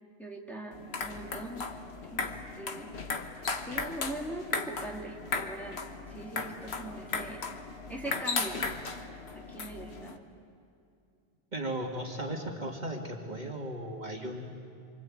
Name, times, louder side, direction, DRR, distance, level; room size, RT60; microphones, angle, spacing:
voice 1, 0.2-1.7 2.1-2.9 3.6-5.8 6.1-7.4 7.9-8.6 9.3-10.3, right 1 dB, ahead, -1 dB, 2.6 m, -41 dB
sound 1, 0.7-10.2, left 4 dB, 75° left, 1.5 m, -36 dB
voice 2, 11.5-14.7, right 1 dB, 40° right, 1 dB, 2.4 m, -36 dB
27.0 x 24.5 x 8.7 m, 2.5 s
omnidirectional pair, 1.1 m